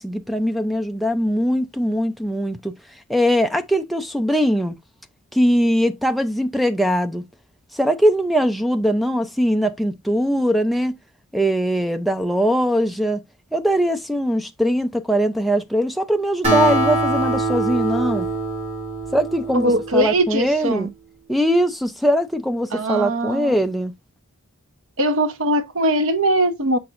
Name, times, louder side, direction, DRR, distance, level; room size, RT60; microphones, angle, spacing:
voice 1, 0.0-2.7 3.1-4.7 5.3-7.2 7.7-11.0 11.3-13.2 13.5-18.3 19.1-20.9 21.3-23.9, equal, ahead, 0.5 m, -21 dB
Acoustic guitar, 16.4-20.2, right 2 dB, 30° right, 3.3 m, -23 dB
voice 2, 19.5-20.9 22.7-23.6 25.0-26.8, right 1 dB, 65° right, 0.9 m, -21 dB
6.6 x 6.0 x 2.5 m
head